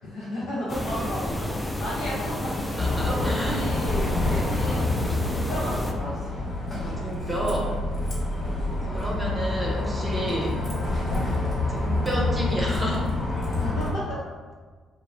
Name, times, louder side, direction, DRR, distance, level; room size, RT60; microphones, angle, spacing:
voice 1, 0.0-4.8 5.2-6.2 6.8-7.0 13.5-14.2, equal, 85° left, -11 dB, 0.7 m, -34 dB
sound 1, 0.7-5.9, left 1 dB, 15° left, 0.4 m, -30 dB
Bus, 2.7-13.9, left 2 dB, 45° left, 1.1 m, -27 dB
voice 2, 2.8-3.6 6.8-7.8 8.8-10.6 11.7-13.2, right 1 dB, 20° right, -3 dB, 0.7 m, -30 dB
2.3 x 2.1 x 3.2 m, 1.5 s
hypercardioid pair, 50°, 0 cm